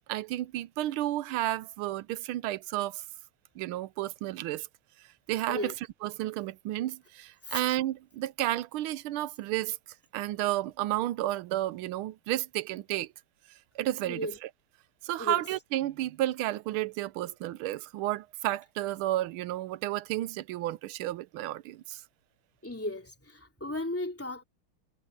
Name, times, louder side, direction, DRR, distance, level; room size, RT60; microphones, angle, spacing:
voice 1, 0.0-3.0 3.6-4.7 5.3-5.7 6.0-9.8 10.1-13.1 13.8-14.5 15.0-22.0, right 14 dB, 80° right, 1.5 m, -32 dB
voice 2, 14.0-14.4 15.2-15.4 22.6-24.4, left 1 dB, 5° left, 3.0 m, -35 dB
omnidirectional pair, 2.3 m